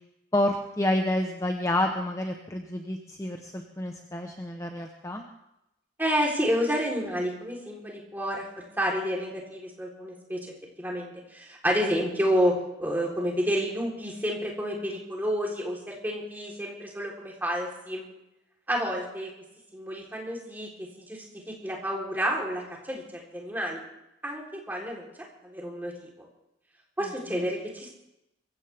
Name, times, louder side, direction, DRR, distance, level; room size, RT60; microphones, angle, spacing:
voice 1, 0.3-5.2 27.0-27.5, left 1 dB, 15° left, 3 dB, 1.0 m, -29 dB
voice 2, 6.0-8.4 8.8-10.5 10.8-18.0 18.7-19.3 19.7-23.8 24.2-25.1 25.4-26.1 27.0-27.9, equal, 10° right, -2 dB, 3.8 m, -30 dB
23.0 x 16.0 x 3.5 m, 0.87 s
head